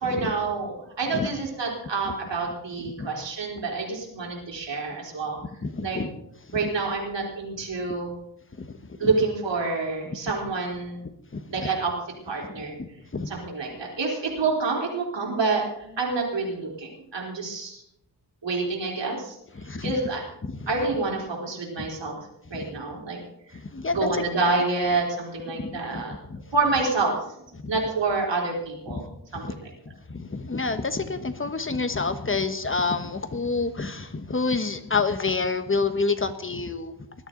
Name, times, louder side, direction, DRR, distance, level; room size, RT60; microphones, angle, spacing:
voice 1, 0.0-5.4 5.8-6.0 6.5-8.1 9.0-11.0 11.5-11.9 12.3-12.7 13.3-17.8 18.4-19.4 19.8-20.2 20.7-22.1 22.5-23.2 23.9-26.2 26.5-27.2 27.7-29.0 29.3-29.4, right 3 dB, 85° right, -1 dB, 4.1 m, -27 dB
voice 2, 5.6-6.1 6.5-6.7 8.6-9.1 11.3-11.8 12.5-13.3 19.5-19.9 20.4-20.7 21.8-21.9 22.5-22.7 23.5-24.2 25.5-26.0 26.3-26.4 27.6-27.7 28.9-29.0 29.3-29.6 29.9-36.9, left 4 dB, 30° left, 9 dB, 1.2 m, -29 dB
20.0 x 12.5 x 3.9 m, 0.80 s
wide cardioid pair, 100°, 42 cm